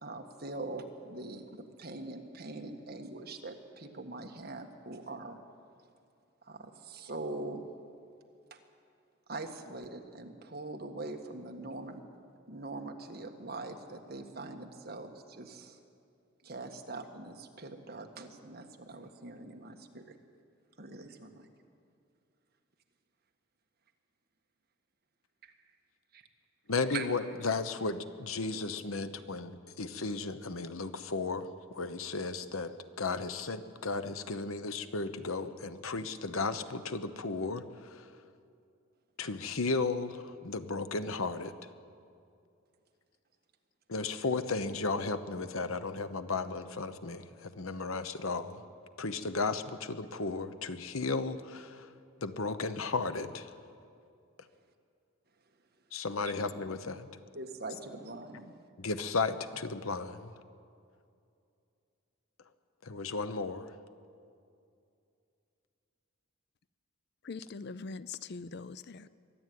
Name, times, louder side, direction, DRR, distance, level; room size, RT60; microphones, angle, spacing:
voice 1, 0.0-5.4 6.4-7.7 8.5-8.6 9.3-12.0 12.5-15.8 16.4-20.0 20.8-21.5 25.4-25.5 26.1-26.2 26.9-27.1 57.3-58.6, right 2 dB, 45° right, 1.6 m, -43 dB
voice 2, 26.7-38.1 39.2-41.5 43.9-48.6 49.0-51.9 52.2-53.5 55.9-57.1 58.8-60.3 62.8-63.7, left 3 dB, 80° left, 1.0 m, -34 dB
voice 3, 67.2-69.1, left 4 dB, 50° left, 0.5 m, -42 dB
23.0 x 12.5 x 9.4 m
head